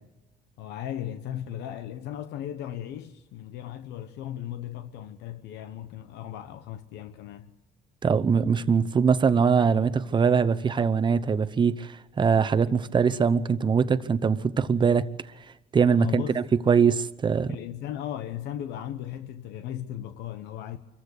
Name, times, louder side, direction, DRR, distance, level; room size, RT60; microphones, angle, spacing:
voice 1, 0.6-7.6 15.9-16.4 17.5-20.8, left 11 dB, 85° left, 1.0 m, -36 dB
voice 2, 8.0-15.1 15.7-17.5, right 6 dB, 25° right, 0.9 m, -22 dB
24.5 x 15.0 x 8.2 m
cardioid pair, 110°, 17 cm